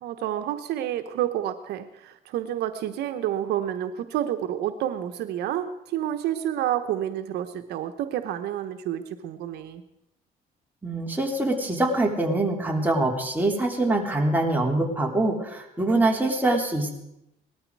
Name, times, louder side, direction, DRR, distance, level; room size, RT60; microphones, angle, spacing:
voice 1, 0.0-9.8, right 11 dB, 80° right, 9 dB, 1.1 m, -29 dB
voice 2, 10.8-16.9, right 2 dB, 10° right, 0 dB, 3.3 m, -24 dB
19.0 x 13.5 x 4.8 m, 0.85 s
cardioid pair, 110°, 17 cm